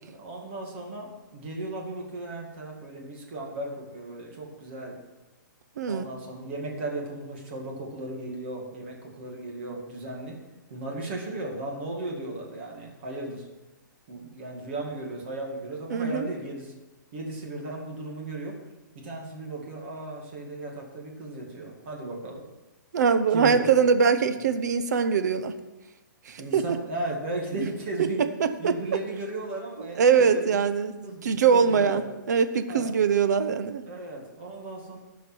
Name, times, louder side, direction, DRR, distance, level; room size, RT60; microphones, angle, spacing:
voice 1, 0.0-5.0 5.9-10.3 10.7-13.5 14.1-16.7 17.1-18.6 18.9-22.4 23.3-23.7 26.4-28.2 28.6-30.7 31.0-32.2 32.7-32.9 33.9-35.0, right 2 dB, 35° right, -1 dB, 2.2 m, -36 dB
voice 2, 15.9-16.3 22.9-25.5 26.3-26.8 28.0-28.1 28.4-28.7 30.0-30.9 31.2-33.8, right 6 dB, 55° right, 10 dB, 0.8 m, -22 dB
13.5 x 5.2 x 6.1 m, 1.1 s
hypercardioid pair, 170°, 11 cm